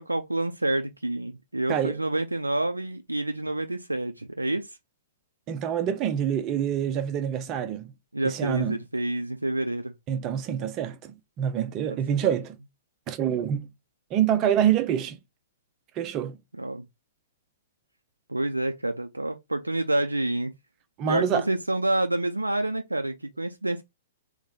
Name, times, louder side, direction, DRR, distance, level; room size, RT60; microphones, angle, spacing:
voice 1, 0.0-4.7 8.1-9.9 16.6-16.8 18.3-20.5 21.1-23.8, right 1 dB, 80° right, 0.5 m, -28 dB
voice 2, 5.5-7.9 8.2-8.8 10.1-12.6 13.1-13.7 14.1-15.2 16.0-16.4 21.0-21.4, right 9 dB, 30° right, 0.7 m, -26 dB
3.5 x 3.2 x 3.6 m
figure-of-eight pair, 110°, 0 cm